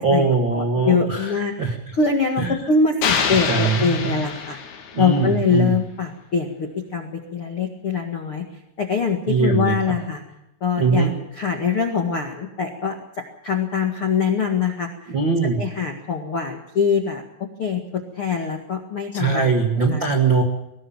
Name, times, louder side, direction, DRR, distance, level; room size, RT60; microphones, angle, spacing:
voice 1, 0.0-1.7 2.4-2.6 3.3-4.2 4.9-5.7 9.3-9.8 10.8-11.1 15.1-15.6 19.1-20.4, right 4 dB, 75° right, 4 dB, 1.1 m, -21 dB
voice 2, 0.5-4.6 5.0-8.4 8.8-10.2 10.6-13.0 13.4-15.1 15.6-17.2 17.6-19.5 19.9-20.1, left 5 dB, 60° left, 3 dB, 1.4 m, -23 dB
sound 1, 3.0-5.2, left 6 dB, 90° left, 5.4 m, -25 dB
22.0 x 18.5 x 7.1 m, 0.88 s
omnidirectional pair, 5.7 m